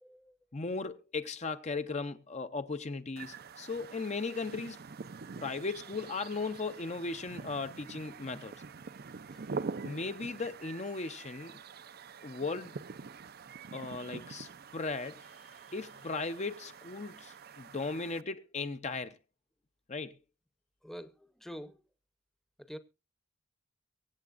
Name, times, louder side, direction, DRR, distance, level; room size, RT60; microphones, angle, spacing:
voice 1, 0.0-0.4 5.1-5.4 9.3-9.5 20.8-21.9 22.6-22.8, equal, ahead, 0.8 m, -47 dB
voice 2, 0.5-4.8 5.4-8.5 9.8-11.6 12.2-12.8 13.7-19.2 19.9-20.2, left 3 dB, 35° left, 0.6 m, -37 dB
sound 1, 3.2-18.2, right 4 dB, 50° right, 0.5 m, -45 dB
24.0 x 8.4 x 2.5 m
head